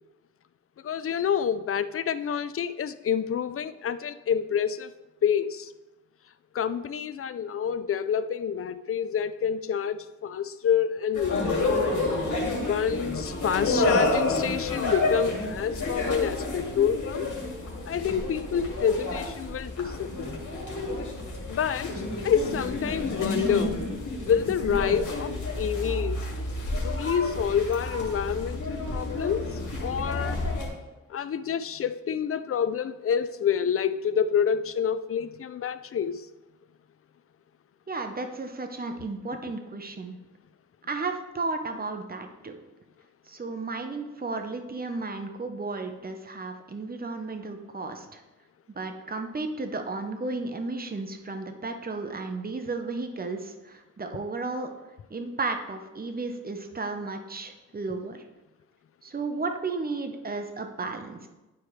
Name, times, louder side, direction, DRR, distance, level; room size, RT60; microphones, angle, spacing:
voice 1, 0.8-4.9 5.2-5.7 6.5-11.7 12.6-17.3 17.8-20.3 21.5-21.9 22.2-23.8 24.2-26.2 26.8-30.4 31.1-36.3, left 8 dB, 45° left, 13 dB, 0.4 m, -28 dB
sound 1, 11.1-30.7, left 2 dB, 70° left, 2.2 m, -30 dB
voice 2, 37.9-40.2 40.9-42.5 43.3-48.2 48.7-54.7 55.1-58.2 59.0-61.3, right 3 dB, 30° right, 5 dB, 0.9 m, -33 dB
11.0 x 4.6 x 3.2 m, 1.1 s
cardioid pair, 75°, 31 cm